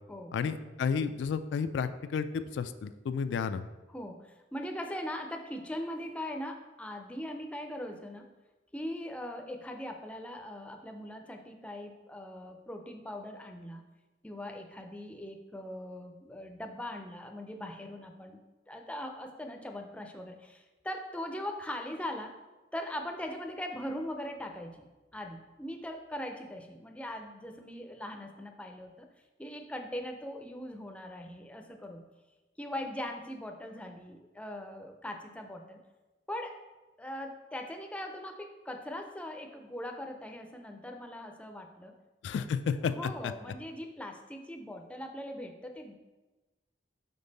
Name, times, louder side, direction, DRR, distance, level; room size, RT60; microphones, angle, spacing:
voice 1, 0.3-3.6 42.2-42.9 43.2-43.3, left 6 dB, 85° left, 11 dB, 0.3 m, -32 dB
voice 2, 3.9-8.3 8.7-13.8 14.2-18.4 18.7-22.4 22.7-24.9 25.1-29.1 29.4-32.0 32.6-35.8 36.3-36.6 37.0-41.9 42.8-45.9, left 1 dB, 5° left, 4 dB, 0.4 m, -40 dB
5.3 x 4.5 x 4.0 m, 1.1 s
head